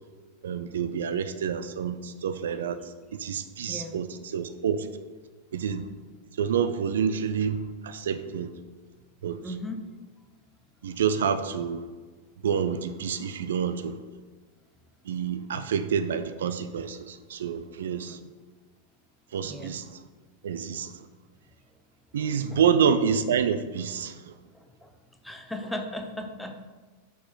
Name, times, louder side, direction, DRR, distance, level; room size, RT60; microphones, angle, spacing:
voice 1, 0.4-4.9 5.5-5.9 6.4-8.5 9.2-9.5 10.8-11.8 12.4-14.0 15.1-18.2 19.3-20.0 20.4-21.1 22.1-24.3, right 7 dB, 60° right, 10 dB, 0.3 m, -28 dB
voice 2, 3.7-4.0 9.4-9.8 18.1-18.2 19.4-19.7 22.5-22.6 24.5-24.6 25.2-26.6, left 1 dB, 5° left, 5 dB, 0.6 m, -36 dB
5.8 x 4.2 x 3.9 m, 1.4 s
figure-of-eight pair, 90°, 0 cm